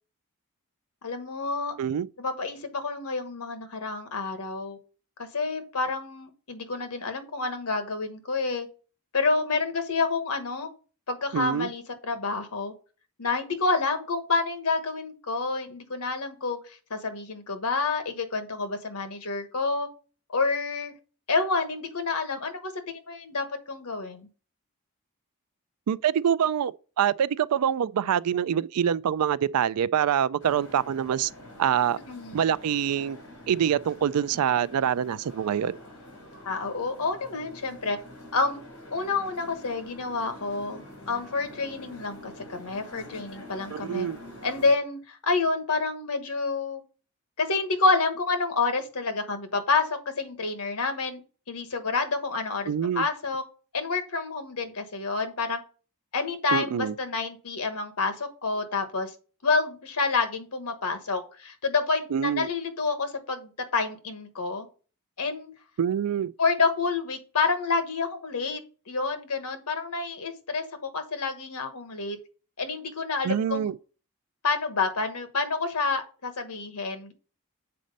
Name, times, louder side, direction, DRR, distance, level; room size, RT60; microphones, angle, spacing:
voice 1, 1.0-1.7 2.2-4.8 5.2-8.7 9.1-10.7 11.1-12.7 13.2-19.9 20.3-20.9 21.3-24.3 32.1-32.5 36.4-38.0 38.3-38.6 38.9-44.1 44.4-46.8 47.4-51.2 51.5-53.4 53.7-55.6 56.1-59.1 59.4-64.7 65.2-65.5 66.4-68.6 68.9-72.2 72.6-73.7 74.4-77.1, left 4 dB, 85° left, 1.3 m, -28 dB
voice 2, 11.3-11.7 25.9-31.3 31.6-32.0 32.3-33.2 33.5-35.8 43.7-44.2 52.7-53.1 56.5-56.9 62.1-62.5 65.8-66.3 73.2-73.7, right 8 dB, 80° right, 0.4 m, -25 dB
sound 1, 30.4-44.7, left 1 dB, 70° left, 3.4 m, -46 dB
7.6 x 4.2 x 5.3 m
head